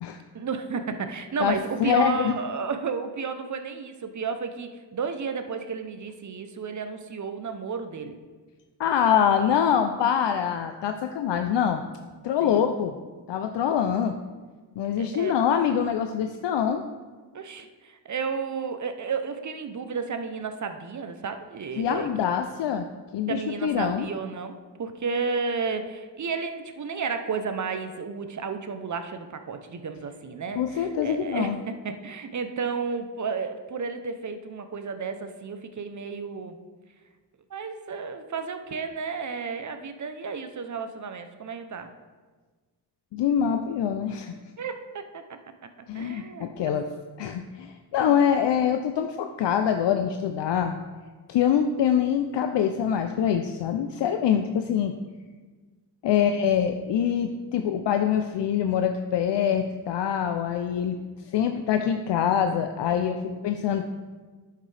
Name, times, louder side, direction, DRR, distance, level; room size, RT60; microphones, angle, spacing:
voice 1, 0.3-8.2 12.4-12.6 15.0-15.4 17.3-22.1 23.3-36.6 37.5-41.9 44.6-45.4 45.9-46.8 48.0-48.2 56.1-56.5 62.8-63.6, right 5 dB, 45° right, 8 dB, 0.7 m, -32 dB
voice 2, 1.8-2.3 8.8-11.8 12.2-13.0 13.3-14.1 14.8-16.8 21.8-22.9 23.1-24.1 30.6-31.6 43.1-44.3 45.9-46.9 47.2-50.8 51.3-54.9 56.0-61.0 61.2-63.2 63.4-63.8, left 8 dB, 75° left, 6 dB, 0.5 m, -24 dB
9.9 x 6.6 x 3.3 m, 1.4 s
cardioid pair, 95°, 43 cm